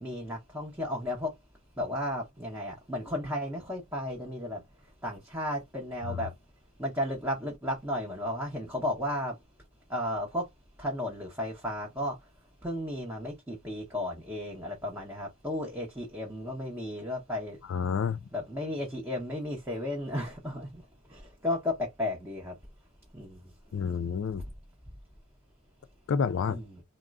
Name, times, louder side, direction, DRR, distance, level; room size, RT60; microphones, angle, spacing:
voice 1, 0.0-1.4 1.8-6.3 6.8-9.4 9.9-10.5 10.8-12.3 12.6-17.6 18.3-20.8 21.1-22.6 23.1-23.5 26.5-26.8, left 1 dB, 10° right, 0.7 m, -34 dB
voice 2, 17.7-18.3 23.7-24.4 26.1-26.6, left 6 dB, 60° left, 0.3 m, -29 dB
3.5 x 2.0 x 2.3 m
head